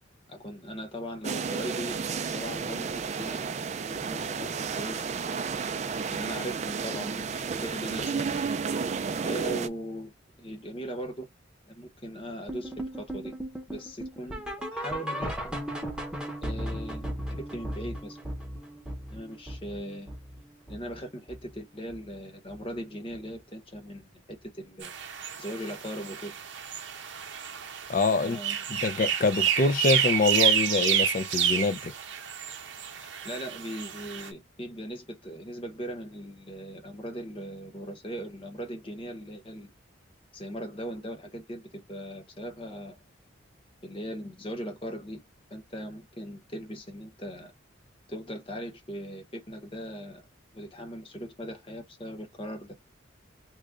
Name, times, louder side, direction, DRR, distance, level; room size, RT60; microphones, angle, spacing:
voice 1, 0.3-3.4 3.9-5.0 6.1-8.5 9.2-10.1 10.4-11.3 11.7-13.3 13.7-14.4 14.7-15.6 16.4-18.2 19.1-20.1 20.7-24.9 25.4-26.3 28.1-28.6 33.0-39.7 40.3-43.0 43.8-45.2 45.5-47.5 48.1-50.3 50.5-52.8, equal, 30° left, 1.0 m, -39 dB
sound 1, 1.2-9.7, right 5 dB, 35° right, 0.3 m, -32 dB
sound 2, 12.5-21.6 21.9-22.2 22.5-22.6 23.1-23.2 23.7-23.8, equal, 5° right, 0.7 m, -37 dB
sound 3, 24.8-34.3, right 9 dB, 65° right, 0.7 m, -29 dB
voice 2, 27.9-28.4 28.7-31.9, left 3 dB, 45° left, 0.4 m, -25 dB
3.1 x 2.2 x 3.6 m
head